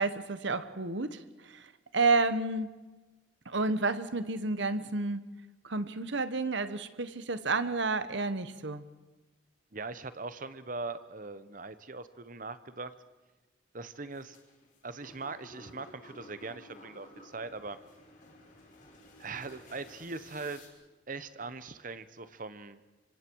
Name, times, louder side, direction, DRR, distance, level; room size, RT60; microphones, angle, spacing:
voice 1, 0.0-2.7 3.5-5.3 5.6-8.8, right 3 dB, 65° right, 12 dB, 1.2 m, -30 dB
voice 2, 9.7-12.9 13.7-14.4 14.8-17.8 19.2-20.7 21.1-22.8, right 3 dB, 45° right, 13 dB, 1.0 m, -41 dB
sound 1, 14.1-20.7, left 1 dB, 40° left, 4.3 m, -54 dB
25.5 x 25.5 x 4.7 m, 1.2 s
head